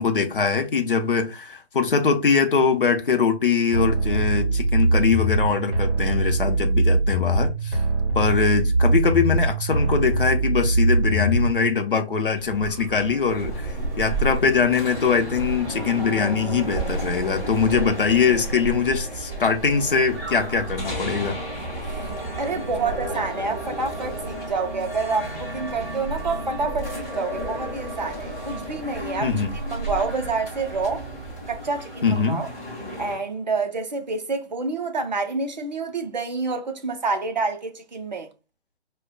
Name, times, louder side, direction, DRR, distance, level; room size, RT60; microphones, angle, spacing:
voice 1, 0.0-7.8 8.1-21.4 29.2-29.5 32.0-32.4, left 5 dB, 50° left, 0.7 m, -22 dB
sound 1, 3.7-11.7, right 2 dB, 55° right, 1.0 m, -22 dB
sound 2, 12.4-31.6, right 4 dB, 25° right, 1.7 m, -34 dB
sound 3, 13.2-33.2, left 1 dB, 15° left, 0.9 m, -35 dB
voice 2, 21.9-29.3 29.7-31.1 31.5-32.5 33.0-38.3, right 4 dB, 40° right, 0.6 m, -28 dB
4.8 x 2.2 x 2.2 m
figure-of-eight pair, 145°, 34 cm